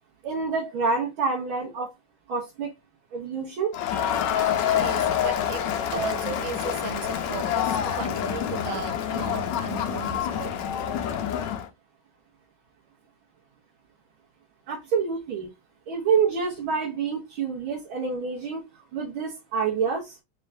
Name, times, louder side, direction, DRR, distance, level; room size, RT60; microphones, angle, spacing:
voice 1, 0.2-1.9 2.3-2.7 3.1-3.7 14.7-15.5 15.9-18.6 18.9-20.2, right 5 dB, 85° right, 1.9 m, -27 dB
Crowd, 3.7-11.7, left 9 dB, 70° left, 1.2 m, -27 dB
voice 2, 4.6-5.7 5.9-10.6, right 6 dB, 65° right, 0.9 m, -35 dB
4.5 x 3.3 x 2.7 m
omnidirectional pair, 2.2 m